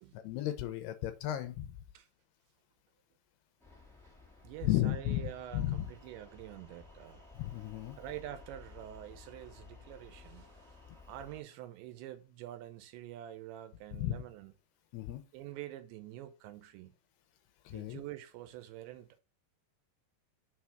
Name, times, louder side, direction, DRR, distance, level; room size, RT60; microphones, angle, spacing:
voice 1, 0.1-1.8 4.6-5.2 5.5-5.9 7.3-8.0 13.9-14.1 14.9-15.2 17.7-18.0, left 14 dB, 75° left, 2.7 m, -34 dB
sound 1, 3.6-11.4, left 3 dB, ahead, 0.9 m, -56 dB
voice 2, 4.4-7.2 8.0-10.5 11.1-14.5 15.3-16.9 17.7-19.2, right 13 dB, 85° right, 3.0 m, -46 dB
6.5 x 4.8 x 5.8 m
omnidirectional pair, 5.0 m